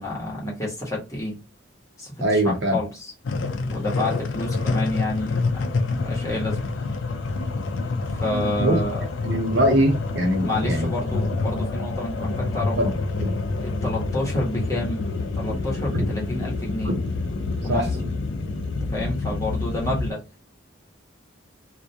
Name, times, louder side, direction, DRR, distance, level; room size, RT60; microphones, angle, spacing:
voice 1, 0.0-1.4 2.0-3.1 3.6-7.0 8.1-9.1 10.4-12.8 13.6-16.9 17.6-17.8 18.9-20.2, left 1 dB, 15° left, 0.9 m, -29 dB
voice 2, 2.2-2.8 8.3-8.8 9.2-10.9 12.8-12.9 13.2-13.3 15.5-15.6 15.9-16.1 16.8-16.9 17.7-18.1, right 1 dB, 60° right, 0.7 m, -23 dB
sound 1, 3.2-20.1, left 3 dB, 70° left, 0.4 m, -27 dB
2.3 x 2.1 x 2.7 m
head